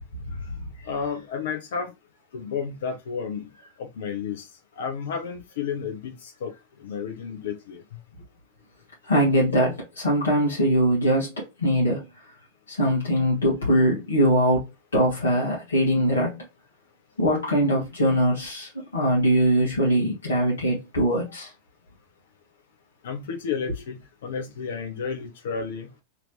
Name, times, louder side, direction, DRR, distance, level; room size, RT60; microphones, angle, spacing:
voice 1, 0.9-1.9 2.3-3.5 3.8-4.5 4.8-6.5 6.8-7.8 23.0-25.9, left 6 dB, 60° left, 0.8 m, -32 dB
voice 2, 9.0-12.0 12.7-14.7 14.9-16.4 17.2-21.5, equal, 75° left, 1.2 m, -22 dB
3.0 x 2.8 x 3.0 m
figure-of-eight pair, 90°, 0 cm